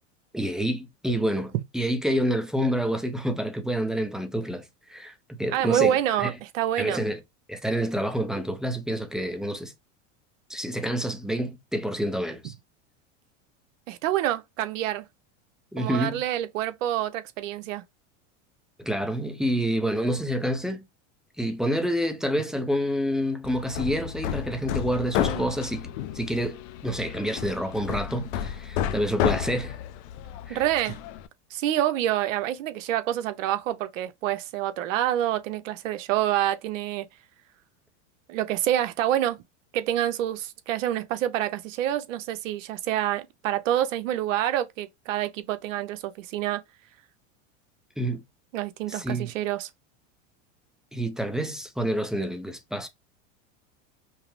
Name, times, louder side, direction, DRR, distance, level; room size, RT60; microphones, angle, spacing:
voice 1, 0.3-6.3 6.8-7.2 7.5-9.7 10.5-12.5 15.7-16.2 18.8-20.8 21.4-29.8 30.5-30.6 48.0-48.2 48.9-49.3 50.9-52.9, equal, ahead, 0.5 m, -28 dB
voice 2, 5.5-7.0 13.9-15.1 15.8-17.8 25.2-25.5 30.5-31.0 31.5-37.1 38.3-39.4 39.7-46.6 48.5-49.7, right 12 dB, 80° right, 0.8 m, -27 dB
Hammer, 23.4-31.3, left 10 dB, 60° left, 0.7 m, -31 dB
5.5 x 2.0 x 3.2 m
supercardioid pair, 130°, 38 cm